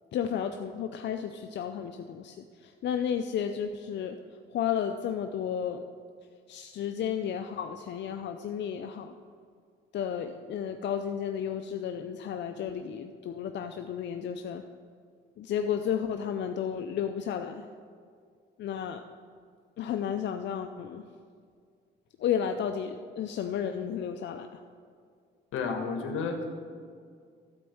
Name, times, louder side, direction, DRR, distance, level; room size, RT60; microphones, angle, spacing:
voice 1, 0.1-4.2 4.5-5.8 6.5-9.1 9.9-14.6 15.4-17.6 18.6-19.1 19.8-21.0 22.2-24.6, left 8 dB, 65° left, 7 dB, 0.5 m, -32 dB
voice 2, 25.5-26.4, left 4 dB, 85° left, 4 dB, 1.4 m, -31 dB
13.0 x 4.4 x 7.8 m, 2.2 s
cardioid pair, 90°, 20 cm